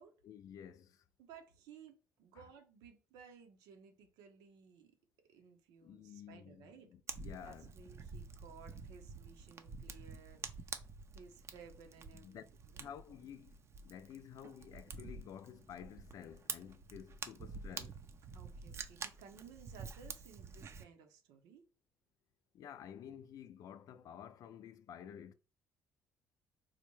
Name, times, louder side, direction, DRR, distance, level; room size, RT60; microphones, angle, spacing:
voice 1, 0.2-1.0 2.4-2.5 5.8-7.9 12.1-12.4 12.8-13.6 13.8-18.0 22.5-25.3, left 9 dB, 65° left, 0.4 m, -52 dB
voice 2, 1.2-5.0 5.3-6.9 7.4-10.9 11.1-12.4 12.7-13.3 18.3-21.6, right 6 dB, 85° right, 0.8 m, -58 dB
Fire, 7.1-20.8, right 5 dB, 45° right, 0.5 m, -48 dB
4.1 x 2.2 x 3.0 m
cardioid pair, 85°, 7 cm